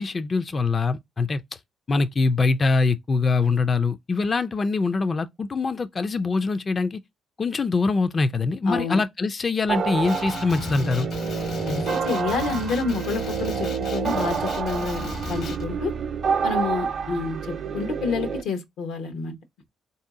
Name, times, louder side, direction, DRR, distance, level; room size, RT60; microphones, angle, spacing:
voice 1, 0.0-1.4 1.9-7.0 7.4-11.1, left 4 dB, 35° left, 0.3 m, -23 dB
voice 2, 8.7-9.0 11.6-15.9 16.4-19.4, left 4 dB, 90° left, 0.9 m, -28 dB
sound 1, 9.7-18.4, right 6 dB, 55° right, 0.6 m, -28 dB
Male speech man speaking, 10.0-15.6, left 4 dB, 75° left, 1.1 m, -36 dB
4.0 x 2.7 x 3.6 m
cardioid pair, 90°, 0 cm